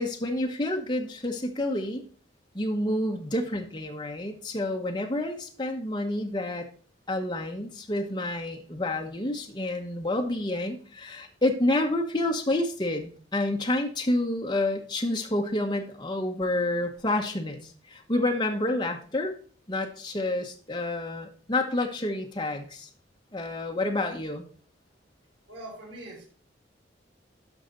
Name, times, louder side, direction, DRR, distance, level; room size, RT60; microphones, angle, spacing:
voice 1, 0.0-2.0 2.5-6.6 7.1-19.4 19.7-22.9 23.3-24.4, left 1 dB, 25° left, 2 dB, 1.3 m, -29 dB
voice 2, 25.5-26.3, right 1 dB, 85° right, -2 dB, 4.6 m, -42 dB
12.0 x 5.7 x 4.0 m, 0.42 s
head